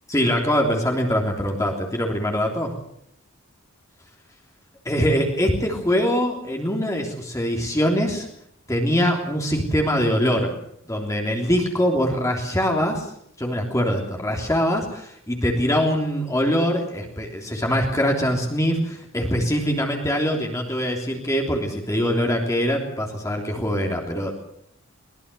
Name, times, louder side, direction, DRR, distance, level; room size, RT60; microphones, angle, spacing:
voice 1, 0.1-2.7 4.8-8.3 8.7-10.5 10.9-13.1 13.4-24.4, equal, 15° left, 1 dB, 3.3 m, -23 dB
22.5 x 19.5 x 6.9 m, 0.70 s
head